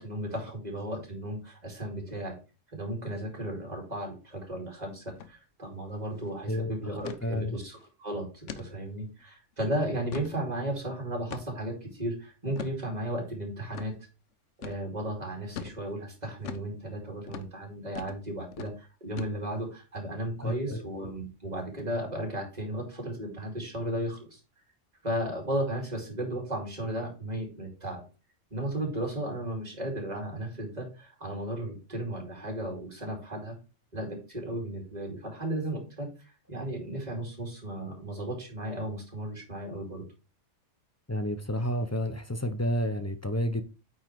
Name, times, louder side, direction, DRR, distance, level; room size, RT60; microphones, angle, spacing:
voice 1, 0.0-2.4 2.7-14.1 14.6-24.4 25.0-28.0 28.5-33.6 33.9-40.0, right 1 dB, 35° right, 1 dB, 2.7 m, -35 dB
sound 1, 5.1-5.3 5.6-5.7 6.1-6.3 7.0-7.2 7.7-7.9 8.5-8.7 9.2-9.3 9.8-10.4 11.3-11.7 12.6-12.8 13.7-13.9 14.6-14.8 15.6-15.8 16.4-16.7 17.3-17.5 18.0-18.2 18.5-18.7 19.2-19.6, left 8 dB, 75° left, 1.1 m, -40 dB
voice 2, 6.5-6.9 7.2-7.6 20.4-20.9 41.1-43.6, equal, 20° left, 9 dB, 0.5 m, -30 dB
8.9 x 4.0 x 4.6 m, 0.32 s
omnidirectional pair, 1.3 m